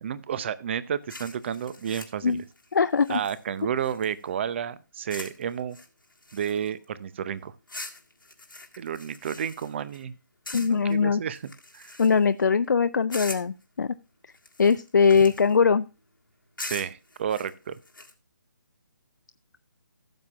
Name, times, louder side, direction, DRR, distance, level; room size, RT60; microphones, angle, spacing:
voice 1, 0.0-2.4 3.1-5.8 6.3-7.5 8.8-10.2 10.7-12.0 16.6-17.8, right 8 dB, 35° right, 17 dB, 0.6 m, -31 dB
sound 1, 1.1-4.3 5.1-5.4 5.7-6.8 7.7-10.0 10.4-10.9 11.3-12.4 13.1-13.6 14.3-15.6 16.6-18.1, left 2 dB, 85° left, 1.7 m, -42 dB
voice 2, 2.7-3.2 10.5-11.2 12.0-13.9 14.6-15.8, left 5 dB, 65° left, 12 dB, 0.4 m, -21 dB
15.5 x 7.2 x 2.3 m, 0.31 s
figure-of-eight pair, 145°, 11 cm